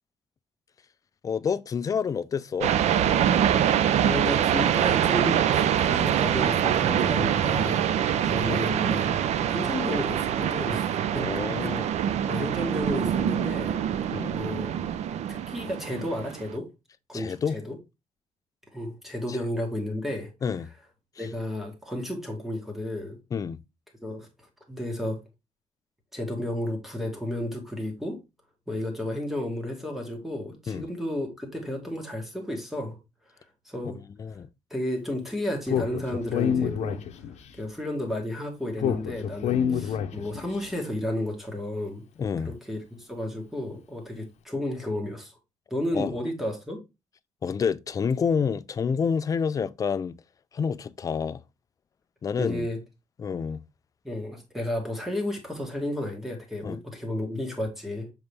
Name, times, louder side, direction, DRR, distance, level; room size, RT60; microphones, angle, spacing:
voice 1, 1.2-2.7 8.1-8.6 11.1-11.9 14.1-14.4 17.1-17.6 20.4-20.7 21.2-21.3 23.3-23.6 30.7-30.8 34.2-34.5 42.2-42.5 45.9-46.1 47.4-50.2 50.5-51.4 52.2-52.7 53.2-53.6 56.6-56.8, left 6 dB, 30° left, 0.4 m, -28 dB
sound 1, 2.6-16.5, right 9 dB, 75° right, 0.5 m, -24 dB
voice 2, 4.0-7.9 8.3-9.2 9.5-11.7 12.3-13.8 14.3-14.7 15.3-16.7 17.1-17.8 18.7-20.3 21.2-23.2 24.0-24.3 24.7-25.2 26.1-28.2 28.7-33.0 33.6-34.0 34.7-37.0 37.6-42.0 42.4-45.3 45.7-46.8 52.4-52.8 54.0-58.1, left 1 dB, ahead, 1.7 m, -32 dB
Speech, 35.7-37.5 38.8-40.5, left 8 dB, 75° left, 0.8 m, -27 dB
7.2 x 3.9 x 3.4 m
wide cardioid pair, 175°, 12 cm